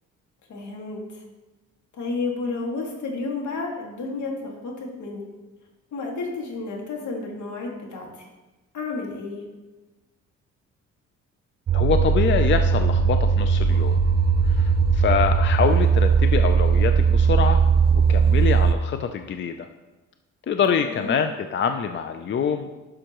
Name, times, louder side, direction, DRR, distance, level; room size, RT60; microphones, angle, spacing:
voice 1, 0.5-1.2 1.9-5.3 5.9-8.3 8.7-9.5 20.8-21.2, left 3 dB, 70° left, 0 dB, 2.1 m, -31 dB
voice 2, 11.7-14.0 14.6-17.6 17.9-19.7 20.5-22.7, left 6 dB, 40° left, 7 dB, 0.5 m, -25 dB
sound 1, 11.7-18.7, right 6 dB, 35° right, 0.4 m, -19 dB
11.0 x 6.3 x 3.0 m, 1.2 s
cardioid pair, 90°, 30 cm